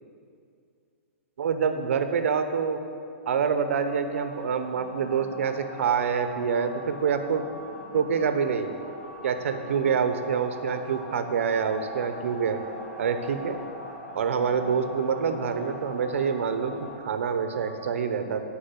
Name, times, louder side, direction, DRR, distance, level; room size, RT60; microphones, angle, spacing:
voice 1, 1.4-2.8 3.3-7.4 7.9-8.7 9.2-12.6 13.0-13.6 14.1-18.4, right 6 dB, 75° right, 8 dB, 0.9 m, -26 dB
sound 1, 3.8-17.8, right 1 dB, ahead, 2.6 m, -49 dB
sound 2, 3.9-17.0, left 1 dB, 90° left, 2.7 m, -43 dB
10.0 x 5.3 x 8.1 m, 2.5 s
hypercardioid pair, 145°, 7 cm